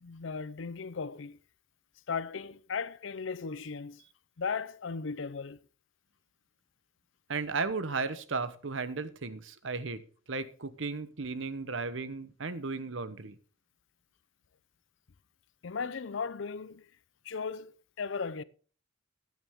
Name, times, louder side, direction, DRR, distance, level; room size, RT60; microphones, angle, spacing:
voice 1, 0.0-1.4 2.1-4.0 4.4-5.6 15.6-16.9 17.2-18.4, left 5 dB, 70° left, 0.6 m, -36 dB
voice 2, 7.3-10.0 10.3-13.4, right 4 dB, 70° right, 1.0 m, -35 dB
14.5 x 9.5 x 3.6 m
head